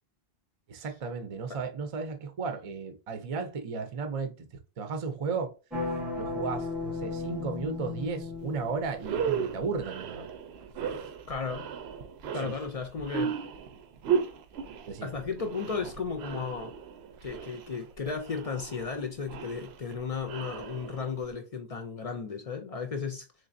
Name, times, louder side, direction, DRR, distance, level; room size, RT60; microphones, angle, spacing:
voice 1, 0.7-5.5 6.2-10.3 10.9-11.0 12.2-12.5 14.6-15.1, right 4 dB, 45° right, 0.5 m, -35 dB
sound 1, 5.7-9.4, left 3 dB, ahead, 0.8 m, -35 dB
sound 2, 8.5-8.6 8.9-21.3, right 7 dB, 80° right, 0.9 m, -35 dB
voice 2, 11.3-11.7 12.3-13.4 15.0-16.7 17.2-23.3, left 5 dB, 50° left, 0.4 m, -34 dB
3.8 x 3.2 x 2.5 m
omnidirectional pair, 1.1 m